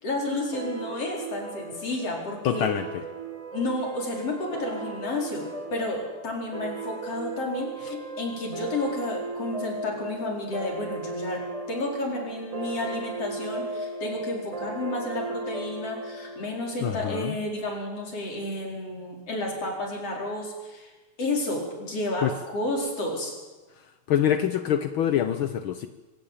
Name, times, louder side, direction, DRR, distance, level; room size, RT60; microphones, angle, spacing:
voice 1, 0.0-2.7 3.5-20.9 21.2-23.3, left 2 dB, 50° left, 0 dB, 5.7 m, -31 dB
sound 1, 0.5-17.6, right 3 dB, 40° right, 0.5 m, -37 dB
voice 2, 2.4-3.0 16.8-17.3 22.2-22.3 24.1-25.9, left 10 dB, 80° left, 10 dB, 1.1 m, -25 dB
25.0 x 14.0 x 9.0 m, 1.2 s
omnidirectional pair, 3.4 m